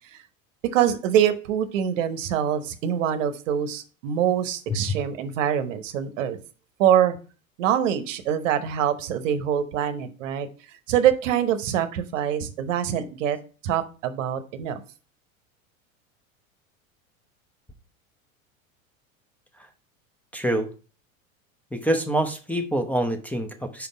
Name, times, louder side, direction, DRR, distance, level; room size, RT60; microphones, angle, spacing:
voice 1, 0.7-6.4 6.8-7.2 7.6-10.5 10.9-13.4 13.6-14.8, right 9 dB, 65° right, 10 dB, 0.9 m, -24 dB
voice 2, 20.3-20.7 21.7-23.9, right 1 dB, 5° left, 3 dB, 0.7 m, -25 dB
5.2 x 4.6 x 5.0 m, 0.36 s
hypercardioid pair, 85°, 41 cm